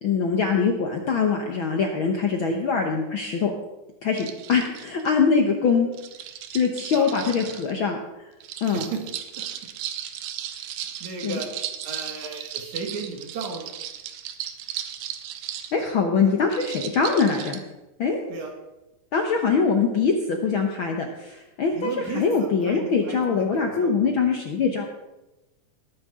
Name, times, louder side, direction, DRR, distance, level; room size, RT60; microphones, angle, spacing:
voice 1, 0.0-3.5 4.0-5.9 6.5-8.0 8.6-8.8 11.2-11.4 15.7-17.6 18.0-18.2 19.1-24.9, left 5 dB, 65° left, 2 dB, 1.3 m, -23 dB
sound 1, 4.2-5.1 5.9-7.7 8.4-15.7 16.5-17.6, right 11 dB, 85° right, 2.4 m, -36 dB
voice 2, 6.9-7.2 8.6-9.0 10.5-11.5 11.8-13.7 18.3-18.5 21.7-24.2, right 4 dB, 65° right, 2 dB, 3.2 m, -35 dB
20.0 x 9.4 x 3.7 m, 1.0 s
omnidirectional pair, 3.5 m